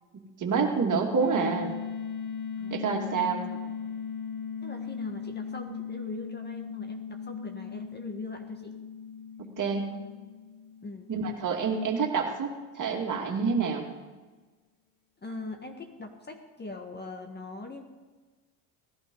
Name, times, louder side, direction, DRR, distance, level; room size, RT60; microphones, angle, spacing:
voice 1, 0.4-1.7 2.7-3.4 9.4-9.9 11.1-13.9, right 5 dB, 40° right, 2 dB, 2.5 m, -28 dB
sound 1, 1.2-11.9, left 6 dB, 40° left, 1.1 m, -38 dB
voice 2, 4.6-8.8 9.9-10.0 10.8-11.1 15.2-17.8, left 2 dB, 20° left, 5 dB, 1.5 m, -41 dB
17.5 x 11.0 x 5.5 m, 1.3 s
cardioid pair, 110°, 46 cm